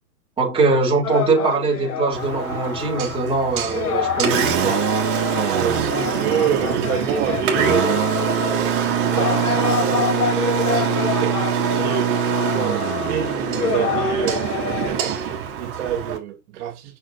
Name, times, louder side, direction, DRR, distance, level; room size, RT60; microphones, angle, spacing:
voice 1, 0.4-4.8 8.6-8.7, right 3 dB, 10° right, 3.5 m, -21 dB
sound 1, 1.0-3.3 3.6-14.9, left 6 dB, 70° left, 3.9 m, -27 dB
Engine, 2.1-16.2, right 7 dB, 30° right, 3.3 m, -23 dB
voice 2, 5.4-17.0, right 9 dB, 50° right, 2.6 m, -28 dB
7.0 x 6.3 x 2.8 m
hypercardioid pair, 135°, 45 cm